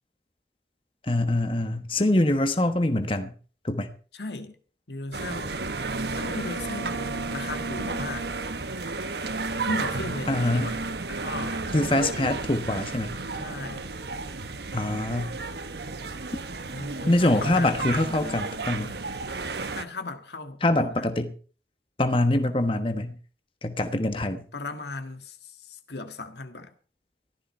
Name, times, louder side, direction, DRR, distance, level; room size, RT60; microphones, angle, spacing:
voice 1, 1.0-3.3 3.6-3.9 10.3-10.7 11.7-13.1 14.7-15.3 17.1-18.9 20.6-21.3 22.0-23.2 23.6-24.4, left 1 dB, 30° left, 1.2 m, -24 dB
voice 2, 4.1-4.6 4.9-5.6 6.2-8.3 9.6-11.7 13.3-14.0 16.7-18.4 19.7-21.1 24.5-26.7, left 2 dB, 75° left, 1.7 m, -36 dB
sound 1, 5.1-19.8, right 3 dB, 70° right, 1.1 m, -32 dB
15.0 x 13.0 x 4.4 m
head